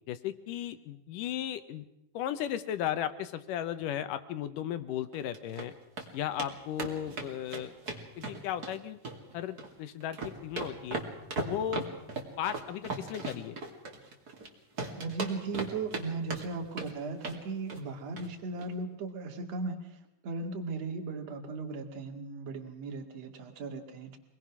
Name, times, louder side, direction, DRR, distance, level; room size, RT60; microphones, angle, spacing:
voice 1, 0.1-1.9 2.1-5.7 6.1-7.7 8.2-9.0 9.3-11.0 11.4-11.9 12.4-13.6, left 10 dB, 75° left, 11 dB, 2.1 m, -35 dB
sound 1, 5.1-5.7 6.0-6.1 6.4-6.5 6.8-8.7 9.0-9.7 10.0-14.5 14.8-16.0 16.3-16.9 17.2-17.4 17.7-17.9 18.2-18.3 18.6-18.7, right 3 dB, 30° right, 2.5 m, -37 dB
voice 2, 15.0-24.2, right 3 dB, 45° right, 4 dB, 3.0 m, -37 dB
25.0 x 20.0 x 6.2 m, 0.87 s
omnidirectional pair, 4.6 m